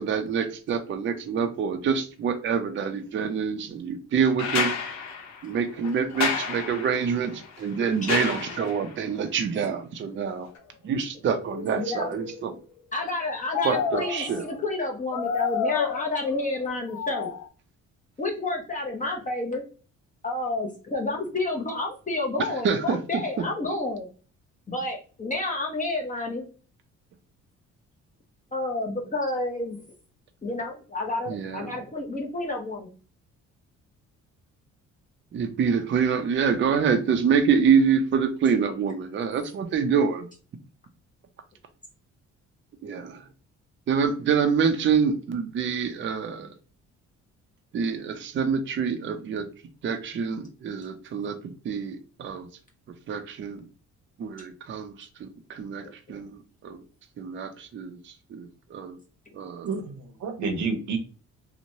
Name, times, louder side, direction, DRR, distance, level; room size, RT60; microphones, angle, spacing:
voice 1, 0.0-4.7 5.4-10.5 10.8-12.6 13.6-14.5 22.6-23.0 31.3-31.8 35.3-40.3 42.8-43.2 43.9-46.5 47.7-49.5 49.8-52.5 53.1-53.7 54.2-56.8 57.2-59.0 59.3-59.7, right 6 dB, 40° right, 7 dB, 0.5 m, -26 dB
sound 1, 4.4-9.0 10.6-10.7, left 5 dB, 70° left, 0.9 m, -31 dB
sound 2, 10.2-10.4 11.3-12.6 13.5-14.6 15.1-16.5 16.9-17.5, left 7 dB, 90° left, 0.5 m, -31 dB
voice 2, 11.8-12.1 12.9-17.3 18.2-19.6 20.2-24.1 24.7-26.5 28.5-29.8 30.4-32.9, left 2 dB, 25° left, 0 dB, 0.7 m, -30 dB
voice 3, 59.6-61.0, right 4 dB, 70° right, 6 dB, 0.8 m, -29 dB
3.0 x 2.1 x 2.6 m, 0.38 s
cardioid pair, 90°, 30 cm